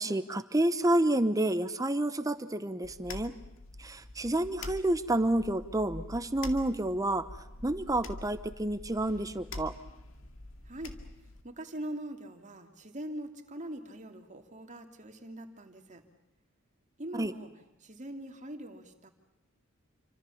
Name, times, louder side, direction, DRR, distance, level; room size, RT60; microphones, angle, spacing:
voice 1, 0.0-3.3 3.8-7.3 7.6-9.7 17.2-17.3, right 1 dB, 15° right, 11 dB, 0.9 m, -29 dB
sound 1, 2.8-11.4, left 2 dB, 70° left, 2.2 m, -45 dB
voice 2, 10.6-11.0 11.4-16.0 17.0-17.5 17.8-19.1, right 1 dB, 35° right, 5 dB, 2.7 m, -42 dB
28.5 x 25.0 x 7.2 m, 0.93 s
head